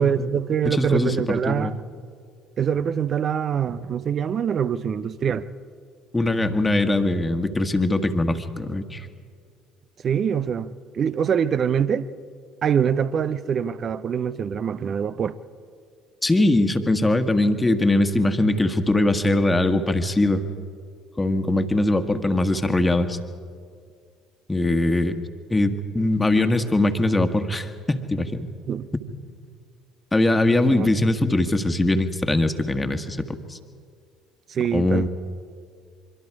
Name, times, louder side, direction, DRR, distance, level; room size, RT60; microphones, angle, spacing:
voice 1, 0.0-1.7 2.6-5.5 10.0-12.1 12.6-15.4 28.7-28.9 30.7-30.9 34.5-35.1, right 8 dB, 40° right, 0.8 m, -24 dB
voice 2, 0.6-1.7 6.1-9.1 16.2-20.4 21.2-23.2 24.5-25.2 25.5-28.5 30.1-33.6 34.7-35.1, left 2 dB, 15° left, 1.7 m, -21 dB
25.0 x 24.5 x 4.9 m
figure-of-eight pair, 55°, 0 cm